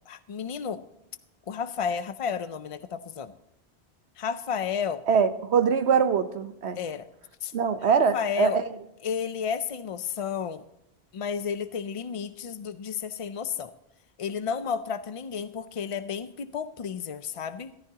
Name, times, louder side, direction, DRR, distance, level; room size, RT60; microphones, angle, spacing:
voice 1, 0.1-0.8 1.5-3.3 4.2-5.0 6.8-7.1 7.4-7.5 8.1-8.6 9.0-10.6 11.1-13.7 14.2-17.7, left 7 dB, 55° left, 12 dB, 0.3 m, -32 dB
voice 2, 5.1-6.8 7.5-8.6, right 6 dB, 80° right, 10 dB, 1.2 m, -23 dB
14.0 x 13.5 x 2.8 m, 0.85 s
omnidirectional pair, 1.1 m